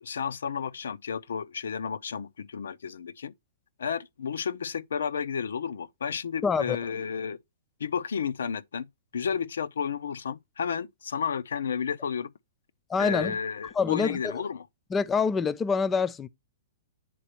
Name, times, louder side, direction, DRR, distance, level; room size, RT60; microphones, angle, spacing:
voice 1, 0.0-3.3 3.8-7.4 7.8-8.9 9.1-12.3 13.0-14.6, left 7 dB, 85° left, 0.4 m, -32 dB
voice 2, 6.4-6.8 12.9-13.4 13.7-14.4 14.9-16.3, left 5 dB, 15° left, 0.4 m, -26 dB
9.0 x 4.1 x 2.9 m
hypercardioid pair, 150°, 0 cm